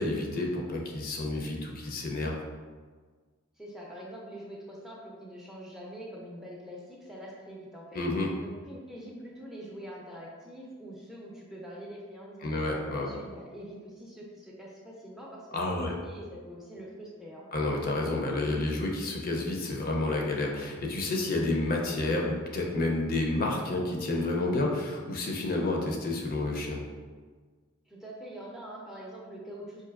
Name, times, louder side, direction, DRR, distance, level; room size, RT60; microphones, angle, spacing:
voice 1, 0.0-2.4 7.9-8.3 12.4-13.1 15.5-15.9 17.5-26.8, left 2 dB, 45° left, 0 dB, 0.5 m, -30 dB
voice 2, 3.6-8.0 8.4-12.6 12.9-17.5 27.9-29.8, equal, ahead, -4 dB, 0.5 m, -44 dB
4.7 x 2.6 x 2.4 m, 1.5 s
head